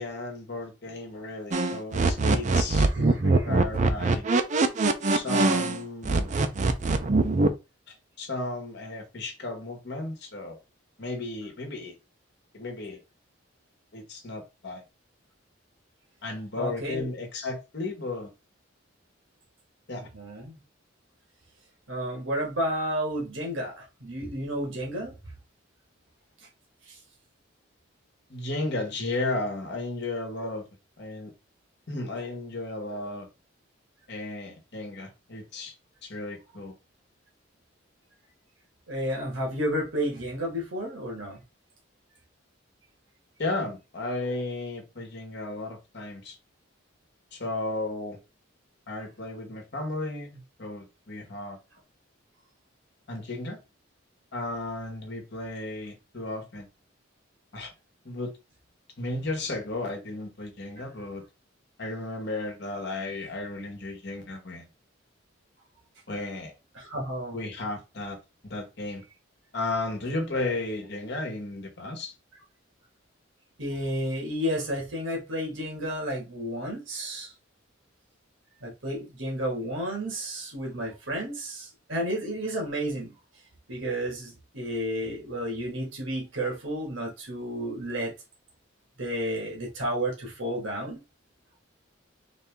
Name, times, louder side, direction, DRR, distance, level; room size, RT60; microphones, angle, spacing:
voice 1, 0.0-4.2 5.1-6.3 7.9-10.6 11.0-12.0 12.5-13.0 13.9-14.8 16.2-18.3 19.9-20.1 28.3-30.7 31.0-31.3 31.9-33.3 34.1-35.7 36.0-36.7 43.4-46.4 47.3-48.2 48.9-51.6 53.1-53.6 54.3-56.7 57.5-57.7 58.0-58.3 59.0-61.2 61.8-64.7 66.1-66.5 67.3-69.0 69.5-72.1, left 2 dB, 60° left, 1.3 m, -34 dB
sound 1, 1.5-5.8 6.0-7.5, right 3 dB, 40° right, 0.4 m, -22 dB
voice 2, 2.9-3.5 16.6-17.1 20.1-20.6 21.9-25.2 26.9-27.0 38.9-41.4 66.8-67.4 73.6-77.3 78.6-83.1 83.7-88.1 89.0-91.0, equal, 80° right, 1.8 m, -31 dB
4.0 x 2.7 x 3.5 m
head